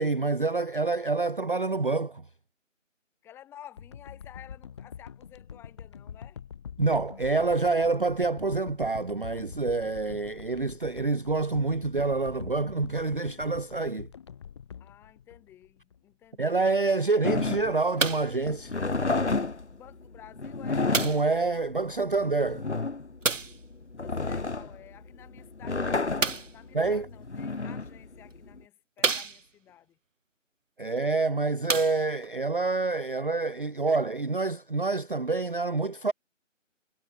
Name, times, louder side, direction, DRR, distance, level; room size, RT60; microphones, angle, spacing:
voice 1, 0.0-2.2 6.8-14.1 16.4-18.7 21.0-22.7 26.7-27.1 30.8-36.1, right 3 dB, 45° right, 0.5 m, -27 dB
voice 2, 3.2-6.4 14.8-17.0 19.7-21.0 23.9-30.0, left 11 dB, 5° left, 4.4 m, -52 dB
sound 1, 3.8-16.0 16.5-16.6, left 8 dB, 20° left, 2.5 m, -45 dB
sound 2, 17.2-28.6, left 3 dB, 60° left, 3.0 m, -31 dB
sound 3, 18.0-18.4 19.3-19.4 20.9-21.4 23.2-23.6 26.2-26.6 27.6-27.7 28.3-28.4 29.0-29.7 31.0-31.1 31.6-32.3 33.2-33.3, right 4 dB, 70° right, 0.9 m, -29 dB
figure-of-eight pair, 155°, 39 cm